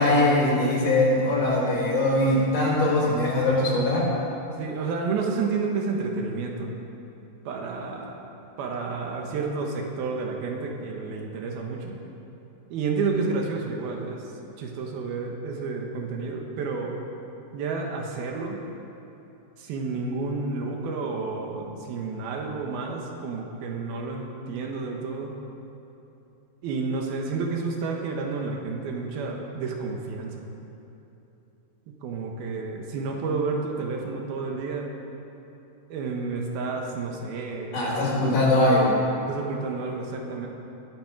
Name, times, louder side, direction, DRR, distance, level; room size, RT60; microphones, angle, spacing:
voice 1, 0.0-4.1 37.7-38.9, left 1 dB, 60° left, -4 dB, 5.4 m, -21 dB
voice 2, 4.5-6.7 7.4-8.2 8.6-12.0 12.7-17.0 17.5-18.6 19.6-25.4 26.6-30.5 31.9-34.9 35.9-38.5 39.3-40.5, right 4 dB, 85° right, 1 dB, 3.2 m, -30 dB
20.5 x 10.0 x 6.1 m, 3.0 s
omnidirectional pair, 4.3 m